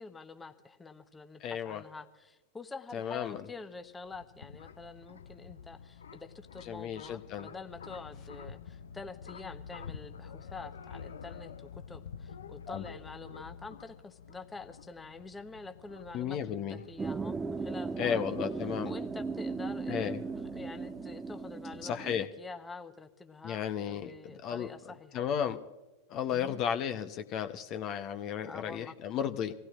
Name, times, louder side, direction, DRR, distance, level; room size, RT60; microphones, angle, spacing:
voice 1, 0.0-18.4 18.8-25.2 26.3-26.6 28.4-28.9, left 4 dB, 15° left, 7 dB, 1.0 m, -47 dB
voice 2, 1.4-1.8 2.9-3.4 6.7-7.5 12.7-12.8 16.1-16.8 18.0-18.9 19.9-20.2 21.8-22.3 23.4-24.7 25.1-25.6 26.1-29.5, left 8 dB, 45° left, 8 dB, 0.9 m, -34 dB
sound 1, 3.7-21.8, left 6 dB, 80° left, 0.6 m, -49 dB
sound 2, 17.0-22.3, right 4 dB, 15° right, 0.5 m, -37 dB
26.0 x 16.5 x 2.5 m, 1.1 s
hypercardioid pair, 90°, 0 cm